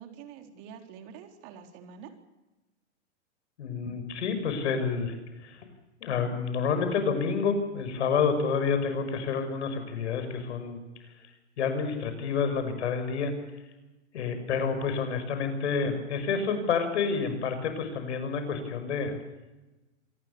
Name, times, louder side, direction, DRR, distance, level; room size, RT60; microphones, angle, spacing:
voice 1, 0.0-2.1, right 7 dB, 45° right, 5 dB, 3.9 m, -46 dB
voice 2, 3.6-5.7 6.0-10.8 11.6-13.3 14.1-19.1, left 5 dB, 70° left, 8 dB, 6.3 m, -29 dB
26.5 x 19.0 x 7.0 m, 1.1 s
hypercardioid pair, 130°, 35 cm